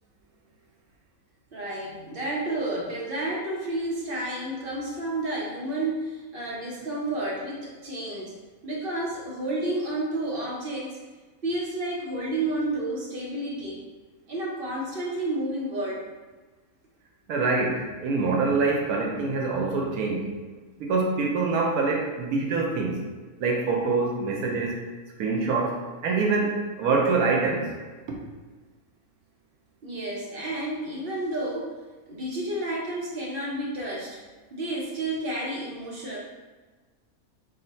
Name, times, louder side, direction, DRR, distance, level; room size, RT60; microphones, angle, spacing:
voice 1, 1.5-8.4 8.6-11.0 11.4-13.8 14.3-16.1 29.8-31.7 32.1-34.2 34.5-36.2, right 1 dB, 50° right, -3 dB, 0.7 m, -31 dB
voice 2, 17.3-20.3 20.8-23.0 23.4-24.8 25.2-27.7, right 3 dB, 85° right, -1 dB, 1.1 m, -25 dB
3.9 x 2.1 x 4.0 m, 1.3 s
omnidirectional pair, 1.5 m